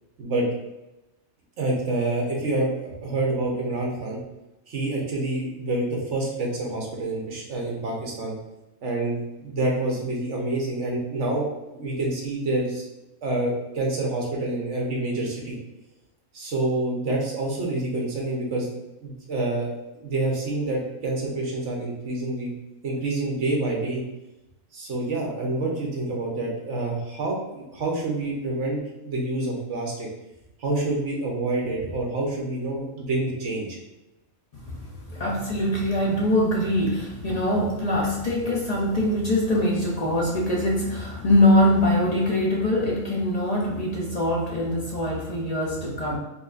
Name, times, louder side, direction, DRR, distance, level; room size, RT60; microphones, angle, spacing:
voice 1, 1.6-4.2 4.7-8.4 8.8-12.8 13.2-15.6 16.3-18.7 19.0-22.5 22.8-24.0 24.7-30.1 30.6-33.8, right 2 dB, 60° right, -2 dB, 1.2 m, -27 dB
voice 2, 35.1-46.2, left 1 dB, 45° left, -3 dB, 0.5 m, -23 dB
4.3 x 3.2 x 2.5 m, 0.93 s
omnidirectional pair, 1.4 m